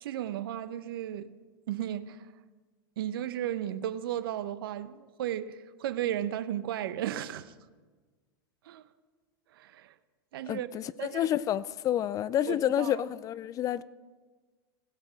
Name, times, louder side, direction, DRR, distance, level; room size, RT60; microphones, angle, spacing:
voice 1, 0.0-1.3 1.7-2.3 3.0-7.5 8.6-8.9 9.5-9.9 10.3-10.7 11.0-11.3 12.5-13.0, right 11 dB, 75° right, 0.7 m, -34 dB
voice 2, 10.5-13.8, left 11 dB, 30° left, 0.4 m, -29 dB
16.5 x 7.9 x 5.2 m
hypercardioid pair, 120°, 12 cm